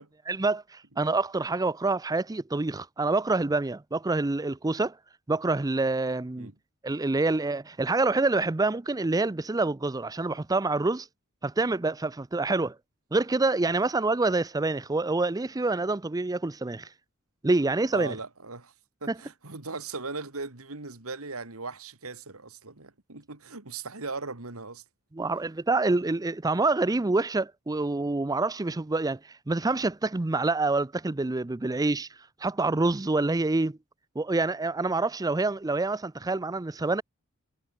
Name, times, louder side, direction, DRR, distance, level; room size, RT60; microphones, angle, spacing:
voice 1, 0.3-5.0 5.3-6.5 6.8-11.1 11.4-12.8 13.1-16.9 17.4-18.2 25.1-32.1 32.4-33.8 34.2-37.0, right 3 dB, 15° right, 0.5 m, -27 dB
voice 2, 17.9-18.7 19.0-24.8, right 3 dB, 85° right, 2.7 m, -38 dB
head